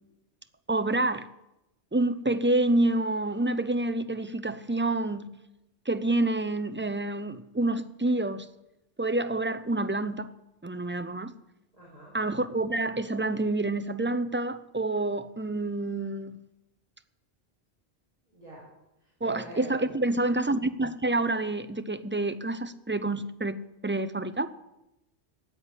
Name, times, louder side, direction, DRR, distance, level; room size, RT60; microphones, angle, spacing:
voice 1, 0.7-1.3 1.9-5.3 5.9-8.5 9.0-10.3 10.6-11.3 12.1-16.4 19.2-24.5, right 2 dB, 15° right, 0.4 m, -28 dB
voice 2, 11.7-12.1 18.2-18.6 19.0-20.0, equal, 35° right, 4.7 m, -45 dB
14.5 x 8.1 x 10.0 m
omnidirectional pair, 1.2 m